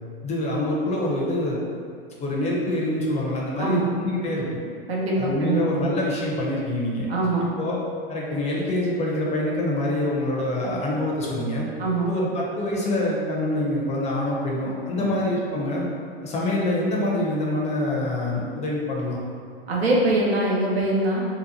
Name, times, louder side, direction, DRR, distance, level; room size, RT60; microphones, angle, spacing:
voice 1, 0.2-1.6 2.2-4.6 5.2-7.1 7.6-7.8 8.1-11.7 12.1-15.9 16.2-19.2, left 1 dB, 20° left, -4 dB, 0.6 m, -25 dB
voice 2, 3.6-3.9 4.9-5.9 7.1-7.5 11.8-12.1 15.0-15.2 19.7-21.3, right 2 dB, 85° right, -4 dB, 0.8 m, -23 dB
2.9 x 2.1 x 3.9 m, 2.1 s
hypercardioid pair, 100°, 30 cm